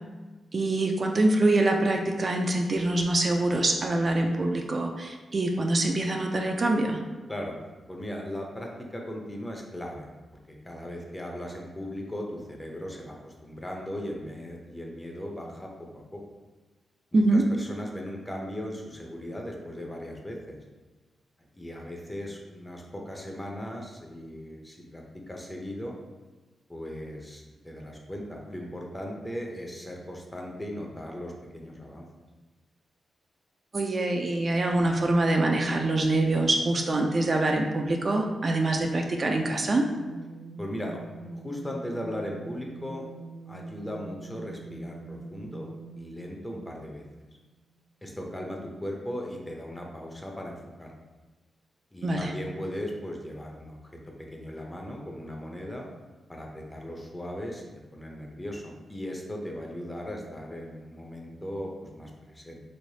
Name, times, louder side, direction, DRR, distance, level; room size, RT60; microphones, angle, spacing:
voice 1, 0.5-7.0 17.1-17.5 33.7-39.9 52.0-52.3, right 2 dB, 45° right, 2 dB, 0.3 m, -25 dB
voice 2, 7.9-10.1 10.5-16.2 17.1-20.6 21.5-25.9 26.7-32.1 40.6-43.0 43.5-45.7 46.0-47.0 48.0-50.9 51.9-55.9 56.3-57.6 57.9-62.6, equal, 15° left, 0 dB, 0.6 m, -38 dB
sound 1, 34.7-47.5, right 3 dB, 90° left, 0.7 m, -43 dB
3.2 x 3.0 x 2.7 m, 1.2 s
cardioid pair, 85°, 0 cm